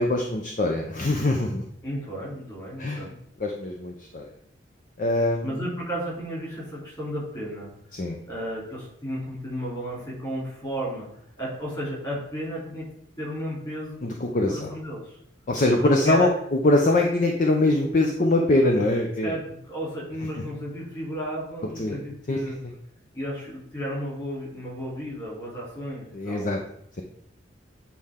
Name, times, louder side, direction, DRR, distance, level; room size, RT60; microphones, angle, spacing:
voice 1, 0.0-1.7 2.8-3.0 3.4-4.3 5.0-5.6 7.9-8.2 14.0-14.7 15.5-19.3 21.8-22.0 22.3-22.4 26.1-26.6, left 2 dB, 40° left, 2 dB, 0.6 m, -23 dB
voice 2, 1.8-3.1 5.4-7.7 8.3-11.1 11.4-12.9 13.2-14.0 14.5-15.2 15.8-16.3 19.2-22.6 23.1-26.5, equal, 20° left, -4 dB, 3.0 m, -33 dB
8.4 x 4.2 x 3.6 m, 0.71 s
head